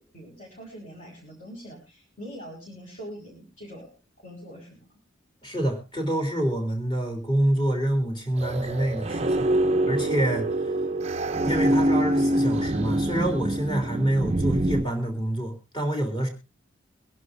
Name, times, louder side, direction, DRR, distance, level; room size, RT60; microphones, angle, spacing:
voice 1, 0.1-3.9 4.2-5.0, equal, 40° left, -4 dB, 5.0 m, -43 dB
voice 2, 5.4-9.5 9.9-10.6 11.4-16.3, right 1 dB, 25° left, 2 dB, 3.2 m, -26 dB
sound 1, 8.4-14.8, right 1 dB, 30° right, 0.6 m, -25 dB
24.0 x 11.0 x 2.7 m, 0.29 s
head